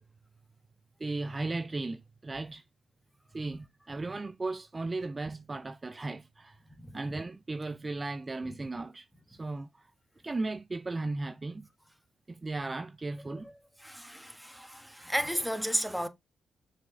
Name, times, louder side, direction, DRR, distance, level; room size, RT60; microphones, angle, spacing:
voice 1, 1.0-2.6 3.3-6.6 6.9-9.9 10.2-11.7 12.3-13.5, right 3 dB, 30° right, 0.4 m, -36 dB
voice 2, 13.8-16.1, equal, ahead, 1.2 m, -34 dB
6.1 x 4.1 x 3.7 m
supercardioid pair, 50°, 0 cm